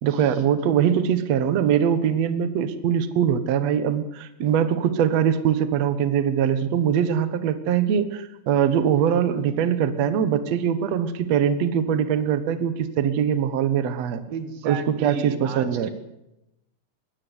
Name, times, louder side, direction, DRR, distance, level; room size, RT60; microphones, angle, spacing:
voice 1, 0.0-14.2 14.6-15.9, right 8 dB, 55° right, 12 dB, 2.2 m, -22 dB
voice 2, 14.3-15.9, right 6 dB, 85° right, 10 dB, 3.7 m, -34 dB
21.5 x 17.0 x 8.1 m, 0.89 s
omnidirectional pair, 4.1 m